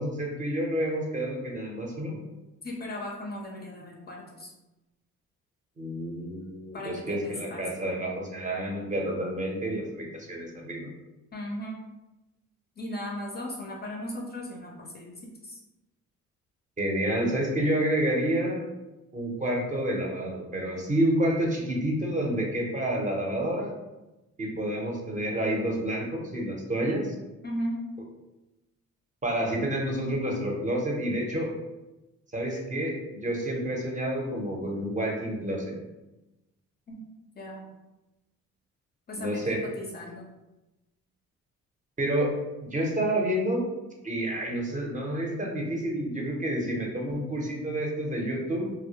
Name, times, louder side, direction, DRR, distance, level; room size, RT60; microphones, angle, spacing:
voice 1, 0.0-2.2 5.8-10.9 16.8-18.7 19.1-23.7 24.4-27.1 29.2-31.5 32.3-35.7 39.1-39.6 42.0-42.3 42.6-43.7 44.0-48.7, right 1 dB, 25° right, -1 dB, 0.6 m, -29 dB
voice 2, 2.6-4.5 6.7-7.9 11.3-11.8 12.8-15.6 27.4-27.8 36.9-37.1 37.4-37.7 39.1-40.3, equal, 35° left, 0 dB, 0.4 m, -37 dB
2.1 x 2.0 x 2.8 m, 1.0 s
cardioid pair, 90°, 30 cm